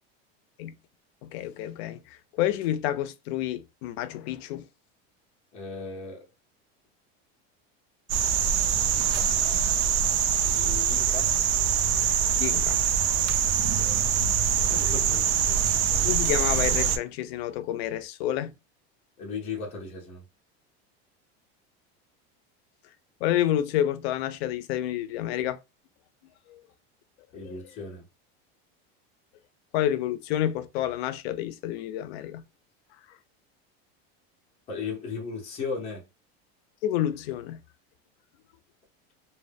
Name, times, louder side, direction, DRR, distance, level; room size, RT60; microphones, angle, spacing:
voice 1, 1.2-2.0 2.4-4.6 12.3-12.8 16.0-18.6 23.2-25.6 29.7-32.4 36.8-37.6, left 12 dB, 85° left, 0.5 m, -29 dB
voice 2, 5.5-6.3 9.4-11.4 13.5-15.7 19.2-20.2 27.3-28.1 34.7-36.0, left 4 dB, 20° left, 0.7 m, -38 dB
sound 1, 8.1-17.0, right 8 dB, 80° right, 0.5 m, -24 dB
2.2 x 2.1 x 3.3 m
cardioid pair, 170°, 31 cm